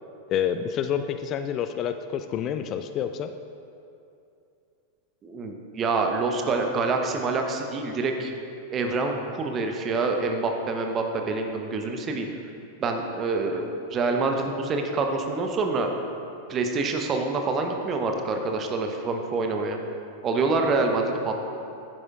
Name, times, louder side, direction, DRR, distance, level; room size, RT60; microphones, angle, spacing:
voice 1, 0.3-3.3, left 8 dB, 35° left, 9 dB, 0.3 m, -28 dB
voice 2, 5.2-8.3 8.7-12.3 12.8-15.9 16.5-19.8 20.2-21.4, right 3 dB, 25° right, 3 dB, 0.9 m, -26 dB
11.0 x 9.8 x 2.5 m, 2.6 s
figure-of-eight pair, 90°, 0 cm